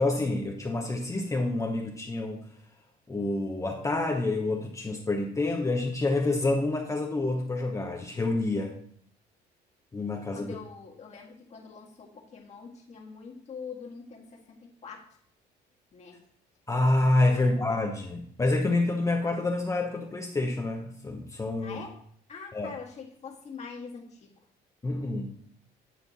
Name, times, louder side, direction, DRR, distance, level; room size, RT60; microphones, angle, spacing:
voice 1, 0.0-2.4 3.1-8.8 9.9-10.5 16.7-21.8 22.5-22.7 24.8-25.3, left 2 dB, 20° left, 1 dB, 0.9 m, -27 dB
voice 2, 10.3-15.2 15.9-16.2 17.3-17.6 21.6-22.0 22.3-24.3, left 5 dB, 40° left, -1 dB, 1.7 m, -44 dB
9.3 x 4.3 x 4.1 m, 0.63 s
cardioid pair, 110°, 17 cm